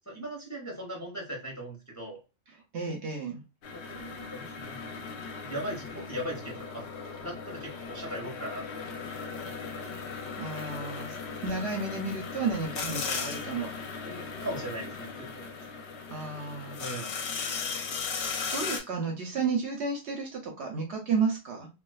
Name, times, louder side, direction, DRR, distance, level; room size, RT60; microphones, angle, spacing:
voice 1, 0.1-2.2 3.7-5.1 5.4-6.8 7.2-9.0 14.0-15.5 16.8-17.1, right 1 dB, 15° left, -2 dB, 0.6 m, -39 dB
voice 2, 2.7-3.4 9.8-10.0 10.4-11.2 11.4-13.7 16.1-17.1 18.5-21.7, right 4 dB, 65° right, 2 dB, 0.8 m, -32 dB
sound 1, 3.6-18.8, left 5 dB, 65° left, 0.8 m, -37 dB
2.4 x 2.3 x 2.3 m, 0.29 s
omnidirectional pair, 1.4 m